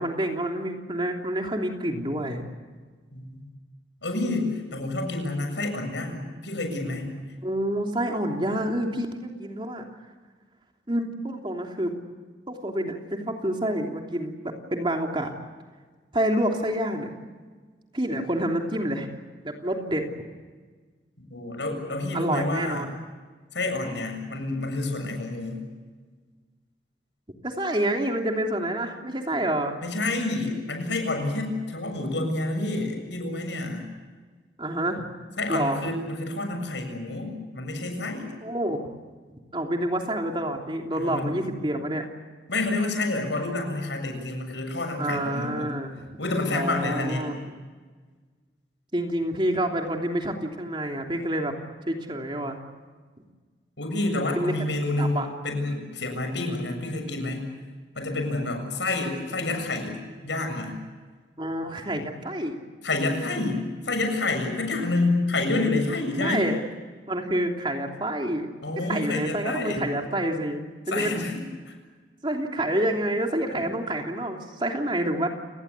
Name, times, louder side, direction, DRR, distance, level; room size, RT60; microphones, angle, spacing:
voice 1, 0.0-2.4 7.4-9.8 10.9-12.0 12.5-15.3 16.1-17.1 17.9-19.1 19.4-20.1 22.1-22.9 27.4-29.7 34.6-35.1 35.5-35.8 38.4-38.8 39.5-42.0 45.0-46.2 46.5-47.4 48.9-51.5 51.9-52.6 54.3-54.5 55.0-55.3 61.4-62.6 66.2-66.6 67.1-68.5 68.9-71.2 72.2-75.3, right 1 dB, 25° right, 2 dB, 3.2 m, -28 dB
voice 2, 3.1-3.4 4.0-7.1 21.3-22.9 23.5-25.7 29.8-33.9 35.4-38.3 40.9-41.3 42.5-45.8 46.2-47.3 53.8-57.5 57.9-60.8 62.8-66.5 68.6-69.9 70.9-71.7 73.5-73.7, left 2 dB, 85° left, 5 dB, 7.3 m, -28 dB
29.5 x 19.5 x 8.5 m, 1.4 s
head